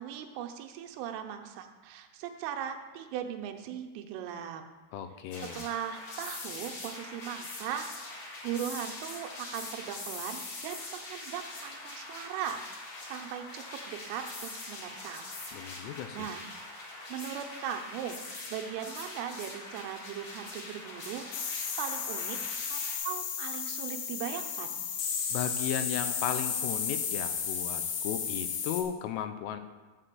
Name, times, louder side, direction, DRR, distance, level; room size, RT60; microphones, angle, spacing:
voice 1, 0.0-4.6 5.5-7.9 8.4-12.6 13.0-15.3 16.1-16.5 17.1-18.2 18.5-22.4 22.7-24.8, right 9 dB, 85° right, 5 dB, 3.4 m, -39 dB
voice 2, 4.9-5.6 15.5-16.3 25.3-29.6, left 9 dB, 90° left, 9 dB, 3.4 m, -35 dB
sound 1, 5.3-22.9, left 2 dB, 55° left, 2.0 m, -43 dB
sound 2, 21.3-28.8, left 7 dB, 70° left, 2.9 m, -33 dB
13.0 x 4.4 x 7.5 m, 1.3 s
omnidirectional pair, 5.7 m